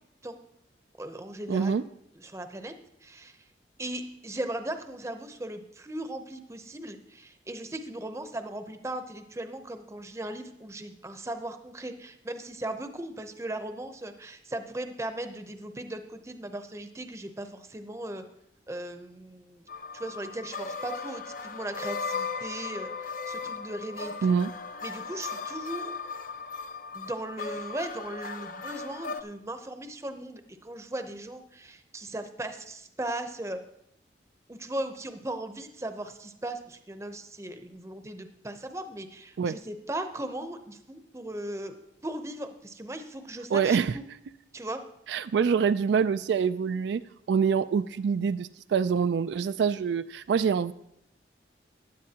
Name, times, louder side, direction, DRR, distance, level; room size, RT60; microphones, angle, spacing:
voice 1, 1.0-1.8 2.1-2.7 3.0-3.4 3.8-18.2 18.7-19.6 19.9-24.1 24.8-25.9 26.9-33.6 34.5-41.7 42.0-44.0 44.5-44.8, right 1 dB, 15° right, 8 dB, 0.7 m, -38 dB
voice 2, 1.5-1.8 24.2-24.5 39.4-39.6 43.5-43.9 45.1-47.0 47.3-50.7, right 6 dB, 75° right, 13 dB, 0.3 m, -25 dB
sound 1, 19.7-29.2, left 4 dB, 50° left, 0.5 m, -37 dB
15.5 x 10.0 x 2.8 m, 0.77 s
head